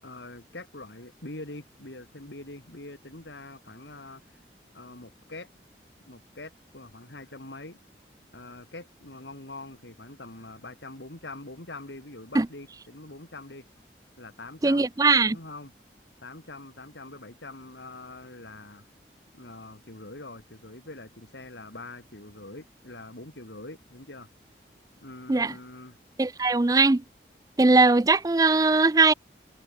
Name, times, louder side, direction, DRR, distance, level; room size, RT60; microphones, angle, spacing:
voice 1, 0.0-4.2 4.7-5.5 6.1-7.8 8.3-13.7 14.2-14.9 15.2-15.7 16.2-18.9 19.3-24.3 25.0-26.0, left 2 dB, 90° left, 3.9 m, -44 dB
voice 2, 14.6-15.4 25.3-25.5 26.2-27.0 27.6-29.1, right 3 dB, 20° right, 0.4 m, -20 dB
head